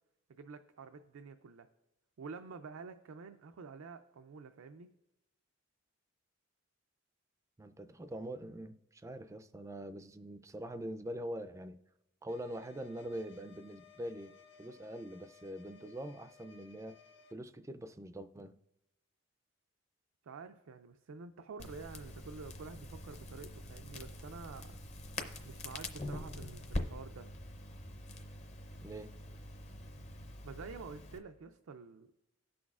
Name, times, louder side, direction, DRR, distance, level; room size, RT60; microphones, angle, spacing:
voice 1, 0.3-1.7 2.2-4.9 20.2-24.7 25.4-27.3 30.4-32.1, right 4 dB, 80° right, 7 dB, 0.4 m, -49 dB
voice 2, 7.6-11.8 12.2-14.3 14.6-17.0 17.3-18.6 28.8-29.1, right 1 dB, 15° right, 10 dB, 0.3 m, -44 dB
sound 1, 12.3-17.3, left 6 dB, 65° left, 0.8 m, -60 dB
Crackle, 21.6-31.2, left 1 dB, 30° left, 0.6 m, -44 dB
17.0 x 6.2 x 2.4 m, 0.91 s
head